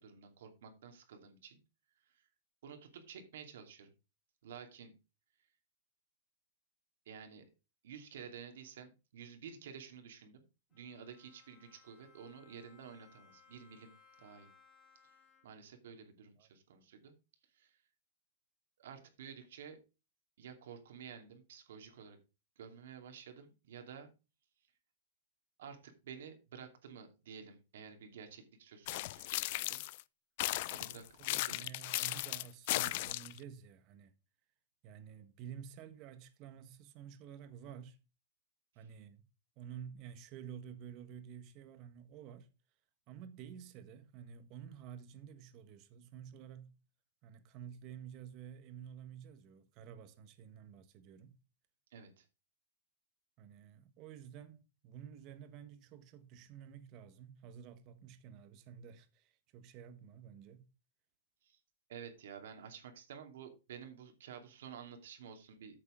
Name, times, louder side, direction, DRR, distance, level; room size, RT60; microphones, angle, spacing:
voice 1, 0.0-1.6 2.0-2.2 2.6-3.9 4.4-4.9 7.1-7.4 7.8-10.4 10.7-13.9 14.2-14.5 15.4-17.1 17.5-17.8 18.8-19.8 20.4-22.2 22.6-24.1 25.6-29.8 30.7-31.1 31.5-31.7 38.7-38.9 51.9-52.2 61.4-61.6 61.9-65.8, right 7 dB, 75° right, 2.6 m, -51 dB
Bowed string instrument, 10.7-15.8, left 6 dB, 25° left, 4.5 m, -65 dB
sound 1, 28.9-30.0 30.4-33.4, left 19 dB, 55° left, 0.4 m, -36 dB
voice 2, 31.2-34.1 34.8-38.0 38.7-39.2 39.6-42.5 43.1-46.7 47.2-51.3 53.4-60.7, right 8 dB, 40° right, 1.4 m, -51 dB
9.0 x 6.8 x 5.0 m
hypercardioid pair, 135°, 0 cm